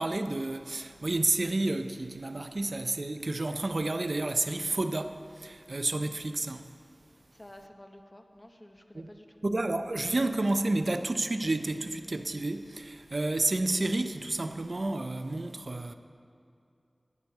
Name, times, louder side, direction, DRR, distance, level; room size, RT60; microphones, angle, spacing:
voice 1, 0.0-6.7 8.9-9.1 9.4-15.9, right 2 dB, 60° right, 0.5 m, -30 dB
voice 2, 7.3-9.4, left 1 dB, 25° left, 0.8 m, -51 dB
9.5 x 7.1 x 6.5 m
wide cardioid pair, 55°, 0 cm